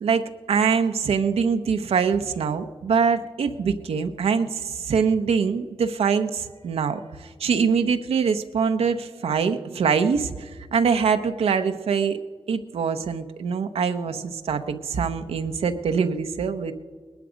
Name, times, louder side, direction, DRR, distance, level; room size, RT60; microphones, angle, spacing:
voice 1, 0.0-12.2 12.5-16.7, right 6 dB, 90° right, 7 dB, 0.9 m, -24 dB
19.5 x 11.5 x 5.1 m, 1.5 s
cardioid pair, 60°, 10 cm